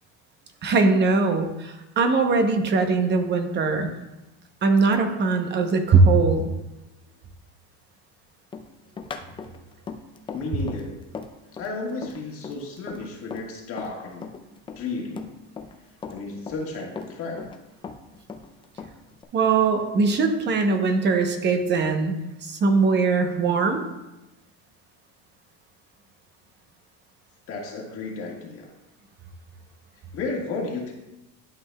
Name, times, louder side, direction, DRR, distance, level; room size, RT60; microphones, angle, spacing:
voice 1, 0.6-3.9 4.6-6.5 19.3-23.8, right 4 dB, 30° right, 5 dB, 0.8 m, -21 dB
Run, 8.5-14.0 14.2-15.8 16.0-17.6 17.8-19.2, left 5 dB, 15° left, 0.4 m, -38 dB
voice 2, 10.3-11.0 11.6-14.3 14.8-15.3 16.1-17.5 27.5-28.7 30.1-30.9, left 3 dB, 40° left, -1 dB, 1.6 m, -33 dB
11.5 x 5.5 x 2.3 m, 0.97 s
cardioid pair, 135°, 34 cm